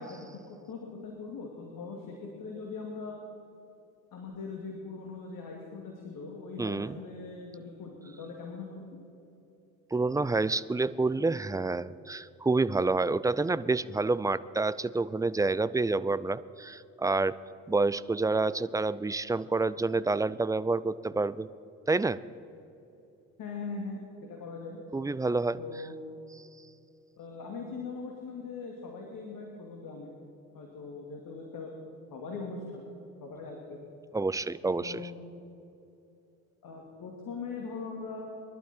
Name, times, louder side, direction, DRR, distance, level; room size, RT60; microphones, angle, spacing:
voice 1, 0.0-3.2 4.1-8.8 23.4-24.8 25.6-25.9 27.2-30.1 30.5-31.7 32.1-33.8 34.8-35.2 36.6-38.2, left 4 dB, 60° left, 0 dB, 2.5 m, -41 dB
voice 2, 6.6-7.0 9.9-17.4 17.7-21.5 21.9-22.2 24.9-25.6 34.1-34.9, right 3 dB, 10° right, 17 dB, 0.4 m, -28 dB
22.5 x 12.0 x 4.4 m, 2.8 s
hypercardioid pair, 55°, 39 cm